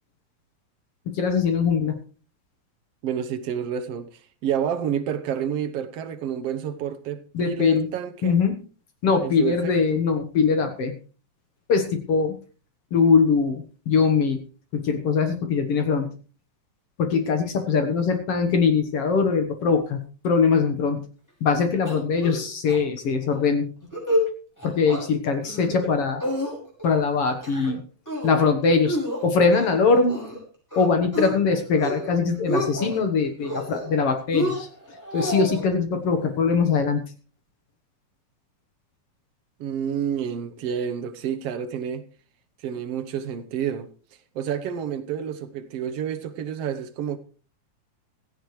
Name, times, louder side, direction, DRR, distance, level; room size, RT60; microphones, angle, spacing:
voice 1, 1.1-2.0 7.3-7.9 8.2-8.6 9.0-10.9 11.7-12.4 12.9-14.4 14.7-16.1 17.0-21.0 21.4-23.7 24.6-26.2 26.8-27.8 28.2-30.2 30.8-34.7 35.1-37.0, left 5 dB, 55° left, 2.0 m, -22 dB
voice 2, 3.0-8.4 9.2-10.0 39.6-42.0 42.6-43.9 44.4-47.2, right 8 dB, 65° right, 1.7 m, -29 dB
sound 1, 21.9-22.4 22.7-22.8 23.1-23.4 23.8-24.3 24.6-25.0 25.4-25.9 26.2-26.9 27.3-27.7 28.1-28.4 28.9-30.4 30.7-31.3 31.7-32.1 32.3-33.0 33.4-34.0 34.3-35.6, equal, 5° left, 5.6 m, -29 dB
16.5 x 14.0 x 3.2 m
omnidirectional pair, 3.6 m